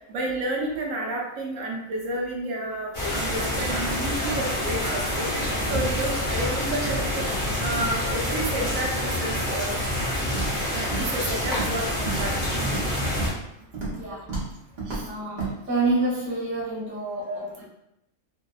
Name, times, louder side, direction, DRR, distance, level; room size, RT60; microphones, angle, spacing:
voice 1, 0.1-5.3 5.7-7.3 7.6-9.8 10.7-12.4 14.9-15.1 17.3-17.4, right 1 dB, 80° right, -1 dB, 1.0 m, -30 dB
sound 1, 2.9-13.3, left 1 dB, 30° left, 0.8 m, -27 dB
Walk footsteps, 10.3-10.6 10.9-11.2 11.4-11.8 12.1-12.9 13.2-13.4 13.7-14.0 14.3-14.5 14.8-15.0 15.4-15.5, right 3 dB, 40° right, 0.8 m, -31 dB
voice 2, 14.0-14.3 15.0-17.7, right 2 dB, 10° right, -8 dB, 0.5 m, -28 dB
2.7 x 2.1 x 2.2 m, 0.84 s
omnidirectional pair, 1.4 m